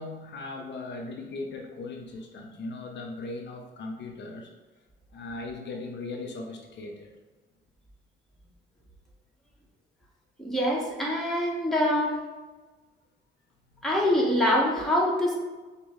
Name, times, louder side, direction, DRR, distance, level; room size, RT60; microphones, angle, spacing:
voice 1, 0.0-4.5 5.1-7.1 13.7-14.1, left 3 dB, 65° left, 2 dB, 0.6 m, -38 dB
voice 2, 10.4-12.2 13.8-15.3, left 1 dB, ahead, -4 dB, 1.2 m, -24 dB
5.3 x 2.2 x 3.1 m, 1.2 s
cardioid pair, 90°, 20 cm